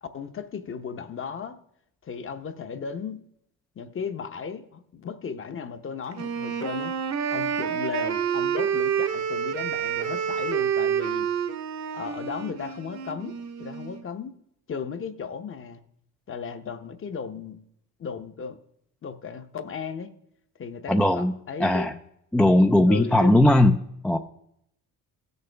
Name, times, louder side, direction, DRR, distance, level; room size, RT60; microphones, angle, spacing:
voice 1, 0.0-1.6 2.0-3.2 3.8-6.9 7.3-11.3 11.9-14.4 14.7-15.8 16.3-17.6 18.0-18.6 19.0-20.1 20.6-22.0 22.9-23.4, left 6 dB, 35° left, 9 dB, 0.8 m, -35 dB
Wind instrument woodwind instrument, 6.1-14.0, right 8 dB, 50° right, 0.9 m, -28 dB
voice 2, 20.9-21.3 21.6-21.9 22.3-23.8 24.0-24.2, left 1 dB, 5° left, 7 dB, 0.3 m, -18 dB
16.0 x 6.7 x 3.4 m, 0.75 s
cardioid pair, 110°, 36 cm